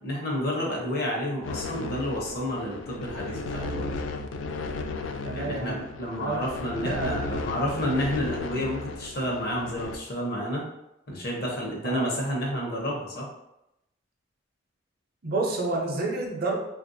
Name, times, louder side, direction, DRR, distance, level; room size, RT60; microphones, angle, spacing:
voice 1, 0.0-3.9 5.4-10.7 11.1-13.3, equal, 55° left, -2 dB, 0.9 m, -30 dB
sound 1, 1.4-10.0, left 3 dB, 85° left, 0.3 m, -35 dB
voice 2, 5.2-6.4 6.8-7.1 11.8-12.2 15.2-16.5, right 2 dB, 55° right, 0 dB, 0.7 m, -30 dB
3.2 x 2.5 x 2.7 m, 0.86 s
head